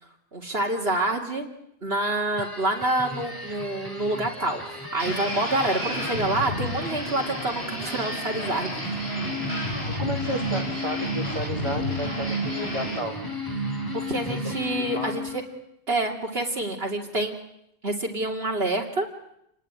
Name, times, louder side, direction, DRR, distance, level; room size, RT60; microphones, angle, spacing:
voice 1, 0.3-1.5 1.8-8.8 13.9-15.4 15.9-17.3 17.8-19.1, right 2 dB, 60° right, 1 dB, 3.1 m, -27 dB
sound 1, 2.4-15.5, equal, 20° left, 5.1 m, -34 dB
sound 2, 5.0-13.0, left 1 dB, 65° left, 5.7 m, -32 dB
voice 2, 9.9-13.2 14.3-14.5 14.9-15.1, right 1 dB, 25° right, -1 dB, 2.6 m, -32 dB
28.5 x 19.5 x 9.8 m, 0.79 s
omnidirectional pair, 1.1 m